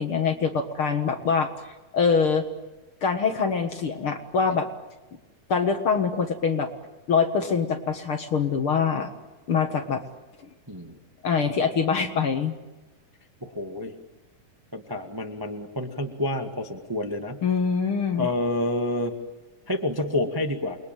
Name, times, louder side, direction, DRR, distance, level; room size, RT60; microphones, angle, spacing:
voice 1, 0.0-1.5 1.9-2.5 3.0-4.7 5.5-6.7 7.1-9.1 9.5-10.0 11.2-12.6 17.4-18.3, left 5 dB, 50° left, 6 dB, 1.8 m, -24 dB
voice 2, 10.7-11.0 13.4-13.9 14.7-17.4 18.2-19.2 19.7-20.8, left 1 dB, 20° right, 4 dB, 0.5 m, -28 dB
29.0 x 22.0 x 9.1 m, 1.1 s
omnidirectional pair, 4.0 m